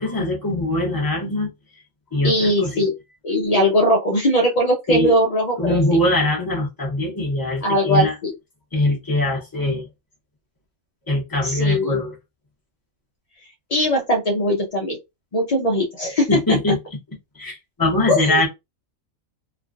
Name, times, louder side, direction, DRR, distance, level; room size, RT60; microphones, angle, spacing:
voice 1, 0.0-1.5 2.1-2.8 3.5-3.6 4.9-5.2 5.6-8.1 8.7-9.9 11.1-12.2 16.3-16.8 17.3-18.5, left 1 dB, 15° left, 1.0 m, -22 dB
voice 2, 2.2-2.9 3.2-5.8 7.6-8.3 11.4-12.0 13.7-15.0 15.3-16.4 18.1-18.4, equal, 50° left, 0.4 m, -20 dB
3.3 x 2.3 x 2.5 m
omnidirectional pair, 1.4 m